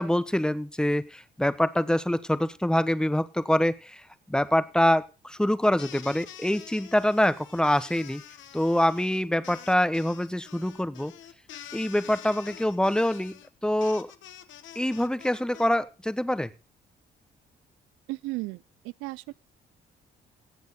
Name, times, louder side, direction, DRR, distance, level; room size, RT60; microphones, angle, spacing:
voice 1, 0.0-4.0 4.3-8.2 8.5-11.1 11.7-13.4 13.6-14.1 14.7-16.5, left 1 dB, 5° left, 1.1 m, -25 dB
sound 1, 5.8-15.7, left 10 dB, 75° left, 1.2 m, -47 dB
voice 2, 18.1-19.3, right 21 dB, 85° right, 0.5 m, -35 dB
17.0 x 7.6 x 4.0 m
supercardioid pair, 60°, 20 cm